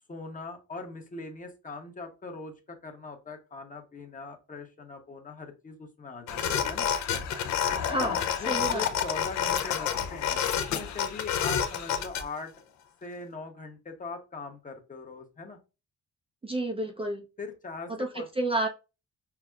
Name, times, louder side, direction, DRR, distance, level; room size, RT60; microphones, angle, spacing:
voice 1, 0.1-6.9 8.4-12.5 13.0-15.6 17.4-18.3, left 3 dB, 25° left, 0.9 m, -41 dB
sound 1, 6.3-12.2, left 8 dB, 70° left, 0.6 m, -29 dB
voice 2, 7.8-8.8 16.4-17.2 18.0-18.7, right 1 dB, 20° right, 0.5 m, -30 dB
5.7 x 2.0 x 2.3 m
cardioid pair, 90°, 30 cm